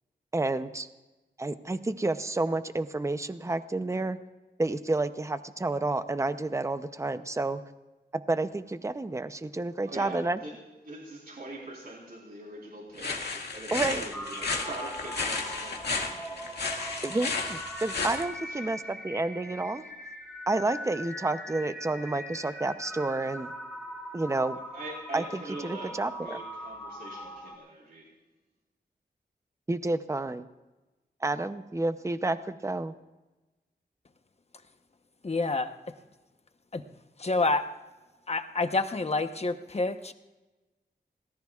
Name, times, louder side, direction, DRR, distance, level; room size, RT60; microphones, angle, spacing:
voice 1, 0.3-0.9 1.4-4.2 4.6-7.6 8.1-10.4 13.7-14.0 17.0-19.8 20.5-23.5 24.1-24.6 25.1-26.4 29.7-30.5 31.2-32.9, right 2 dB, 15° right, 11 dB, 0.6 m, -30 dB
voice 2, 9.8-10.6 10.8-16.7 18.5-18.7 24.5-28.1, right 2 dB, 60° right, -3 dB, 4.0 m, -43 dB
sound 1, 13.0-18.2, left 4 dB, 70° left, 1.9 m, -33 dB
sound 2, 14.1-27.5, equal, 5° left, 2.4 m, -41 dB
voice 3, 35.2-35.7 36.7-36.8 37.2-37.7 38.3-40.1, left 3 dB, 35° left, 8 dB, 1.0 m, -28 dB
26.0 x 18.5 x 2.4 m, 1.1 s
wide cardioid pair, 115°, 18 cm